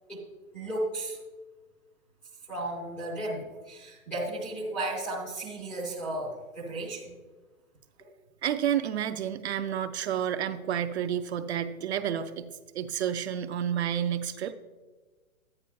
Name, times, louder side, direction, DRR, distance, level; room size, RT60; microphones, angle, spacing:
voice 1, 0.5-1.2 2.5-7.2, right 1 dB, 5° left, -7 dB, 0.4 m, -34 dB
voice 2, 8.4-14.5, right 9 dB, 50° right, 9 dB, 0.4 m, -30 dB
9.9 x 9.6 x 2.3 m, 1.3 s
hypercardioid pair, 145°, 42 cm